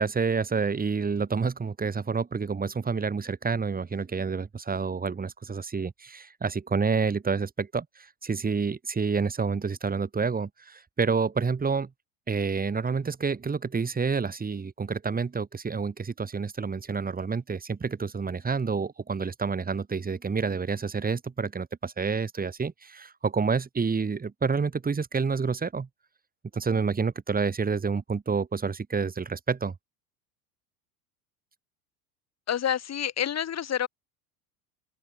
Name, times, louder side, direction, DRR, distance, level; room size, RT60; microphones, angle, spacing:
voice 1, 0.0-11.9 12.3-25.9 26.5-29.7, right 5 dB, 20° right, 5.4 m, -28 dB
voice 2, 32.5-33.9, left 9 dB, 35° left, 5.8 m, -28 dB
open air
supercardioid pair, 110°, 44 cm